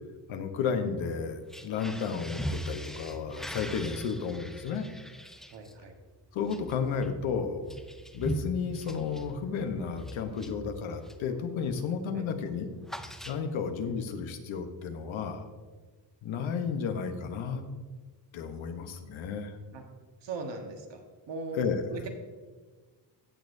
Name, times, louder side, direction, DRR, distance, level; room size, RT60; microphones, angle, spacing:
voice 1, 0.3-4.8 6.3-7.6 8.1-12.7 13.2-15.4 16.2-17.6 18.3-19.6 21.5-22.0, left 6 dB, 90° left, 7 dB, 1.0 m, -32 dB
sound 1, 1.4-11.3 11.7-12.0 12.2-13.8, right 1 dB, ahead, 0.5 m, -41 dB
voice 2, 5.5-5.9 12.1-12.2 19.7-19.8 20.2-21.0 21.3-21.6 21.9-22.1, right 3 dB, 70° right, 3 dB, 1.4 m, -39 dB
15.5 x 6.3 x 2.7 m, 1.4 s
cardioid pair, 100°, 46 cm